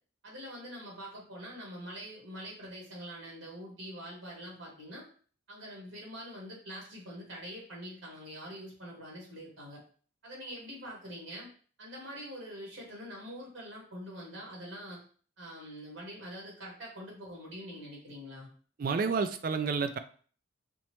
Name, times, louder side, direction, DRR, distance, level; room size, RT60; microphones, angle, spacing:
voice 1, 0.2-5.1 5.5-9.8 10.2-11.5 11.8-15.0 15.4-18.5, equal, 60° right, -3 dB, 1.6 m, -44 dB
voice 2, 18.8-20.0, right 5 dB, 45° right, 9 dB, 0.3 m, -30 dB
5.2 x 2.1 x 3.0 m, 0.43 s
head